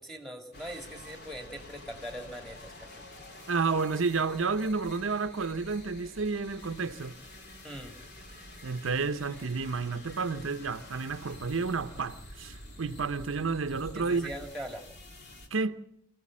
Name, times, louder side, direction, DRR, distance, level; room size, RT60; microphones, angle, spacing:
voice 1, 0.0-3.0 7.6-8.0 14.0-14.9, equal, ahead, 2.2 m, -41 dB
sound 1, 0.5-15.5, left 1 dB, 55° left, 2.8 m, -48 dB
voice 2, 3.5-7.2 8.6-14.3 15.5-15.8, right 4 dB, 75° right, 0.7 m, -31 dB
25.0 x 15.5 x 7.3 m
head